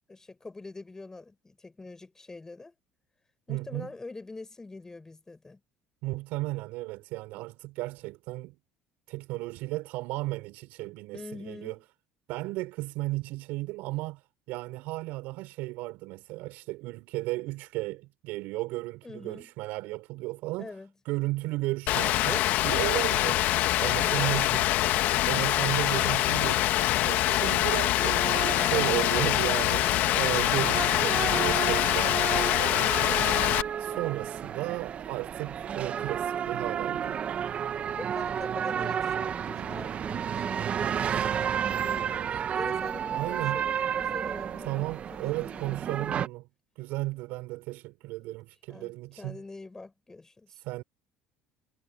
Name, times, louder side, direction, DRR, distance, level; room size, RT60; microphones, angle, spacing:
voice 1, 0.1-2.7 3.5-5.6 11.1-11.8 19.0-19.5 20.6-20.9 24.0-24.5 28.3-29.6 33.9-34.2 38.0-46.2 48.7-50.6, left 3 dB, 15° left, 7.7 m, -44 dB
voice 2, 3.5-3.9 6.0-8.6 9.1-11.8 12.3-20.7 21.1-23.4 23.8-24.7 25.3-28.2 28.6-33.3 33.8-37.2 43.1-43.6 44.6-46.5 46.8-49.4 50.5-50.8, right 20 dB, 75° right, 5.6 m, -34 dB
Rain, 21.9-33.6, left 15 dB, 70° left, 1.4 m, -25 dB
sound 1, 28.0-46.3, right 8 dB, 45° right, 1.5 m, -32 dB
supercardioid pair, 90°, 3 cm